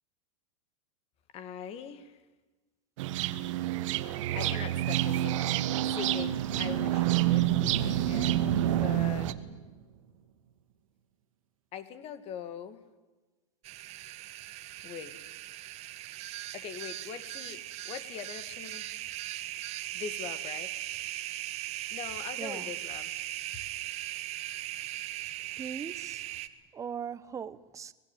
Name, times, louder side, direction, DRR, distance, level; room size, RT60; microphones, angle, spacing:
voice 1, 1.3-2.2 4.3-5.5 5.8-9.3 11.7-12.9 14.8-15.2 16.5-18.9 19.9-20.7 21.9-23.2 23.5-23.6, left 8 dB, 35° left, 2.0 m, -42 dB
sound 1, 3.0-9.3, right 14 dB, 65° right, 1.5 m, -29 dB
sound 2, 5.9-9.7, right 8 dB, 90° right, 2.6 m, -33 dB
sound 3, 13.6-26.5, right 15 dB, 40° right, 1.5 m, -39 dB
voice 2, 22.4-22.7 25.6-26.2 26.7-27.9, right 7 dB, 20° right, 1.0 m, -39 dB
25.5 x 19.5 x 9.1 m
supercardioid pair, 135°, 17 cm